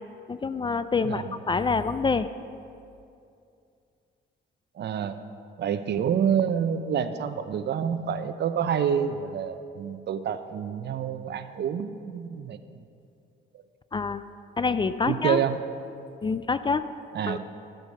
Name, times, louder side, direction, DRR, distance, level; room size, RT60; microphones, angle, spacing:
voice 1, 0.3-2.3 13.9-14.2 14.6-15.4 16.2-16.8 17.2-17.4, left 4 dB, 25° left, 13 dB, 0.4 m, -26 dB
voice 2, 4.8-5.2 5.6-12.6 15.1-15.6 17.1-17.4, right 8 dB, 60° right, 11 dB, 0.7 m, -27 dB
13.5 x 8.0 x 5.4 m, 2.5 s
cardioid pair, 90°, 20 cm